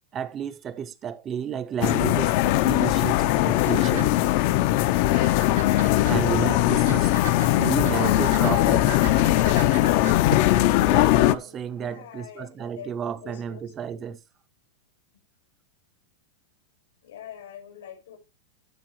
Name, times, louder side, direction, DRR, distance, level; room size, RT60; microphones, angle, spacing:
voice 1, 0.1-4.1 6.1-7.1 7.6-8.9 10.8-14.2, right 7 dB, 20° right, 0.4 m, -31 dB
sound 1, 1.8-11.4, left 15 dB, 40° left, 0.4 m, -20 dB
sound 2, 2.6-11.0, right 10 dB, 70° right, 0.8 m, -40 dB
voice 2, 11.3-13.6 17.0-18.2, left 9 dB, 85° left, 2.4 m, -45 dB
13.0 x 4.6 x 3.0 m
supercardioid pair, 175°, 0 cm